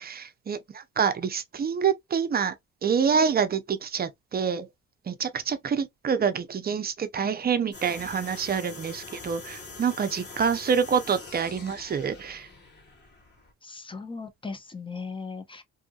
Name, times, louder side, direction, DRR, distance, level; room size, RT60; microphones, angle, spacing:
voice 1, 0.0-2.6 2.8-4.7 5.1-12.5, right 6 dB, 30° right, 0.6 m, -27 dB
sound 1, 7.7-13.5, left 3 dB, 35° left, 1.2 m, -44 dB
voice 2, 13.6-15.6, left 4 dB, 15° left, 0.6 m, -38 dB
2.7 x 2.6 x 2.3 m
cardioid pair, 90°, 30 cm